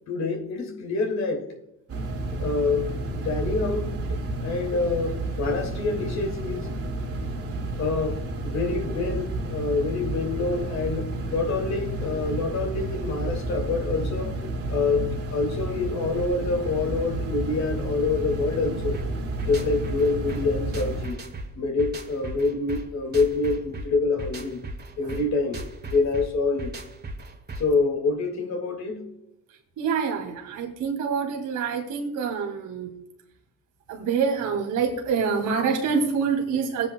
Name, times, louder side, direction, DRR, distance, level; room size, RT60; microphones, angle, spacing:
voice 1, 0.1-1.5 2.3-6.7 7.8-14.4 14.7-19.0 19.4-21.2 21.5-24.6 25.0-26.7 27.6-29.1, left 3 dB, 65° left, 2.3 m, -26 dB
sound 1, 1.9-21.1, right 2 dB, 50° right, 2.1 m, -31 dB
sound 2, 18.9-27.8, right 2 dB, 35° right, 1.7 m, -37 dB
voice 2, 29.8-32.9 33.9-36.9, right 6 dB, 90° right, 2.7 m, -26 dB
17.0 x 9.5 x 2.3 m
cardioid pair, 90°, 30 cm